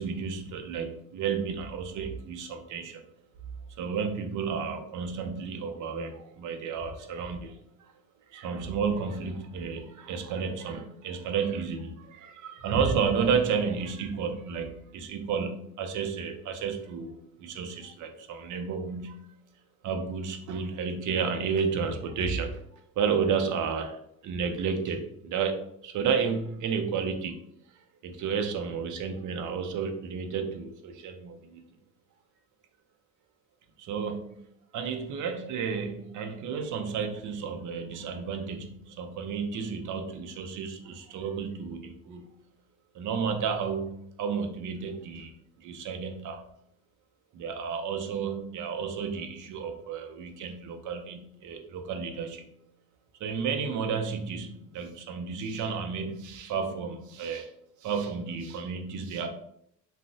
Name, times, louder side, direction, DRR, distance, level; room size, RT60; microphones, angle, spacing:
voice 1, 0.0-3.0 3.8-7.9 8.3-19.3 19.8-24.0 24.2-27.4 28.0-31.6 33.8-34.4 34.7-42.3 42.9-45.3 45.6-46.4 47.3-52.5 53.2-57.5 57.8-59.3, right 6 dB, 75° right, 5 dB, 0.6 m, -32 dB
2.4 x 2.0 x 3.8 m, 0.73 s
cardioid pair, 90°, 30 cm